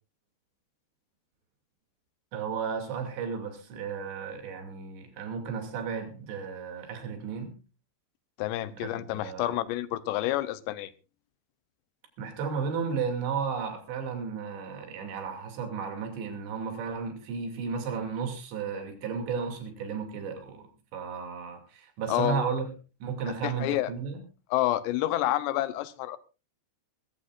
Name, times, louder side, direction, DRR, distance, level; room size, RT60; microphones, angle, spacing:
voice 1, 2.3-7.5 8.8-9.6 12.2-20.6 20.9-22.7 23.0-24.2, right 6 dB, 90° right, 5 dB, 4.9 m, -34 dB
voice 2, 8.4-10.9 22.1-22.4 23.4-23.9 24.5-26.2, left 14 dB, 85° left, 15 dB, 3.0 m, -28 dB
21.5 x 14.5 x 2.5 m, 0.32 s
omnidirectional pair, 4.9 m